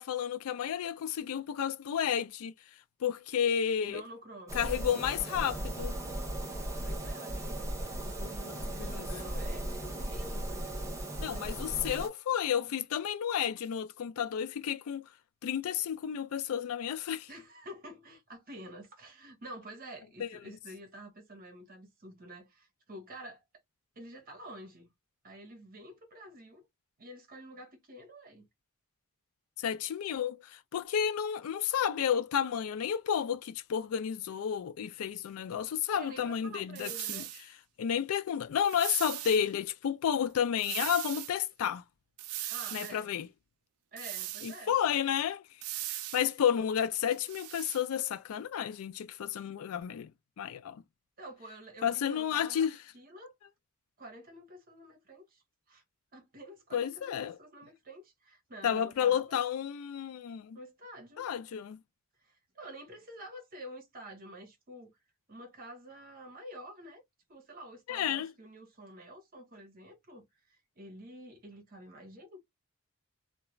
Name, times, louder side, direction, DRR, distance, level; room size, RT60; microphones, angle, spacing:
voice 1, 0.0-2.5 3.0-4.0 4.5-6.0 8.9-9.0 11.2-15.1 15.4-17.3 20.2-20.4 29.6-37.2 37.8-41.8 42.7-43.3 44.4-45.4 45.9-50.1 50.4-50.8 51.8-52.8 56.7-57.4 58.6-60.6 61.2-61.8 67.9-68.3, left 8 dB, 80° left, 0.3 m, -31 dB
voice 2, 3.8-4.6 6.8-10.6 11.3-11.8 12.6-12.8 17.3-23.4 24.0-24.9 25.2-26.7 27.0-28.5 35.9-37.3 42.5-43.1 43.9-44.7 51.2-52.7 52.9-53.3 54.0-55.4 55.7-55.8 56.1-59.4 60.5-61.3 62.2-64.9 65.3-67.0 67.3-72.4, right 1 dB, 45° right, 1.0 m, -49 dB
sound 1, 4.5-12.1, right 1 dB, 15° right, 0.6 m, -37 dB
sound 2, 36.8-37.4 38.6-39.4 40.6-41.3 42.2-43.0 44.0-44.6 45.6-46.3 47.1-47.8, right 14 dB, 85° right, 0.3 m, -39 dB
2.3 x 2.2 x 3.0 m
head